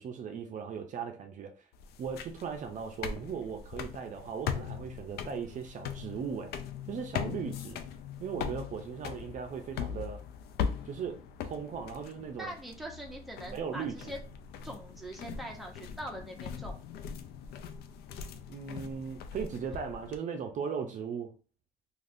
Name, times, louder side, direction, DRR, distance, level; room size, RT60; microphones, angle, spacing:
voice 1, 0.0-1.7 2.0-6.5 6.9-7.8 8.2-10.2 10.9-12.5 13.5-14.1 18.5-21.3, right 6 dB, 50° right, 0.5 m, -38 dB
sound 1, 1.7-20.2, left 7 dB, 70° left, 0.4 m, -40 dB
voice 2, 12.4-14.2 14.6-16.8, right 1 dB, ahead, 0.7 m, -42 dB
3.4 x 2.4 x 2.5 m
cardioid pair, 110°, 17 cm